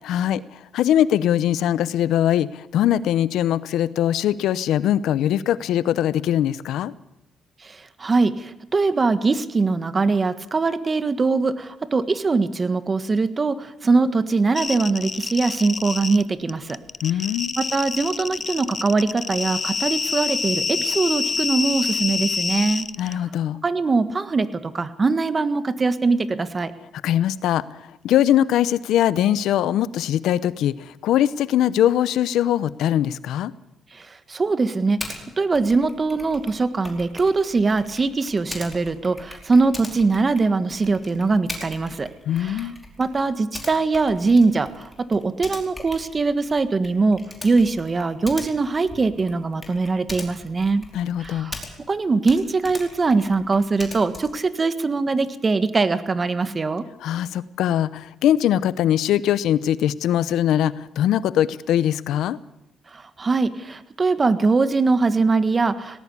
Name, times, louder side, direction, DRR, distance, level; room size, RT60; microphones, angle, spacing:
voice 1, 0.0-6.9 17.0-17.5 23.0-23.6 27.0-27.6 28.0-33.5 42.3-42.8 50.9-51.5 57.0-62.4, left 11 dB, 85° left, 17 dB, 0.8 m, -21 dB
voice 2, 7.6-16.8 17.6-23.2 23.6-26.7 33.9-42.1 42.4-42.7 43.0-50.8 51.2-51.6 51.9-56.8 62.9-66.0, right 3 dB, 30° right, 12 dB, 1.6 m, -22 dB
sound 1, 14.6-16.2 16.5-23.1, left 4 dB, 35° left, 0.8 m, -27 dB
Typing, 35.0-35.2 35.5-52.0 52.2-54.5, left 2 dB, 15° left, 4.7 m, -40 dB
18.5 x 18.5 x 8.5 m, 0.85 s
cardioid pair, 90°, 0 cm